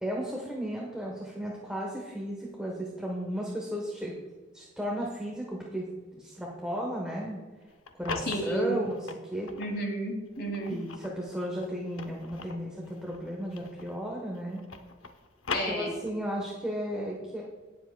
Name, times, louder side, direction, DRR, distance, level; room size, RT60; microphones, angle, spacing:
voice 1, 0.0-4.1 4.5-5.9 6.2-7.4 8.0-9.0 9.3-9.5 10.7-14.6 15.7-17.4, equal, 5° right, -2 dB, 1.1 m, -34 dB
sound 1, 7.6-9.8 10.3-14.1 14.4-16.3, left 4 dB, 90° left, 0.8 m, -40 dB
voice 2, 8.3-8.8 9.6-10.8 15.5-15.9, right 1 dB, 55° left, 1 dB, 2.3 m, -32 dB
17.5 x 7.4 x 2.2 m, 1.3 s
head